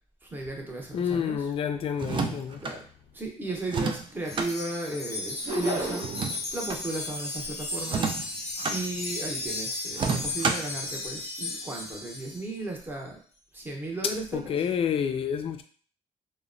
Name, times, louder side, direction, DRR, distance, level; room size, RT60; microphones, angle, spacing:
voice 1, 0.2-1.5 2.6-2.8 3.1-6.3 6.5-8.3 8.7-13.2 13.5-14.6, right 2 dB, 15° right, 0.7 m, -35 dB
voice 2, 0.9-2.6 14.3-15.6, left 7 dB, 50° left, 0.3 m, -29 dB
sound 1, 1.9-2.8 3.7-4.5 6.0-6.8 7.8-8.8 9.9-10.8, right 5 dB, 40° right, 0.4 m, -30 dB
Wind chime, 4.3-12.5, left 2 dB, 25° left, 0.8 m, -35 dB
sound 2, 5.4-6.3, right 1 dB, 65° right, 0.9 m, -32 dB
2.9 x 2.1 x 2.5 m
cardioid pair, 100°, 12 cm